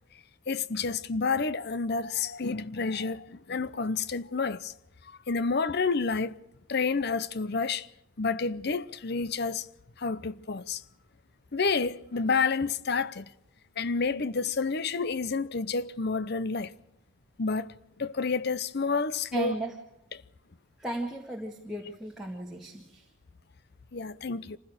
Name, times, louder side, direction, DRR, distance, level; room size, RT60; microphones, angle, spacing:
voice 1, 0.5-4.7 5.3-6.4 6.7-7.9 8.2-9.7 10.0-10.8 11.5-13.3 13.8-16.7 17.4-17.7 18.0-19.5 23.9-24.6, left 4 dB, 50° left, 0.7 m, -29 dB
voice 2, 19.3-19.8 20.8-23.1, right 2 dB, ahead, 1.9 m, -35 dB
26.0 x 16.0 x 6.4 m
head